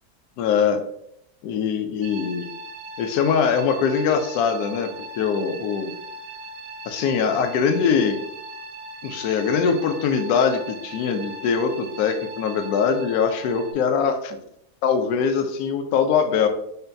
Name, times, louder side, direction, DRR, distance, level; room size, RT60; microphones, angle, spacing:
voice 1, 0.4-0.8 1.4-2.5 3.0-4.9 5.2-5.9 6.9-8.2 9.0-14.4 14.8-16.5, left 6 dB, 70° left, 6 dB, 1.0 m, -22 dB
sound 1, 2.0-13.7, right 2 dB, 80° right, 1.2 m, -39 dB
6.5 x 2.3 x 2.6 m, 0.73 s
omnidirectional pair, 1.8 m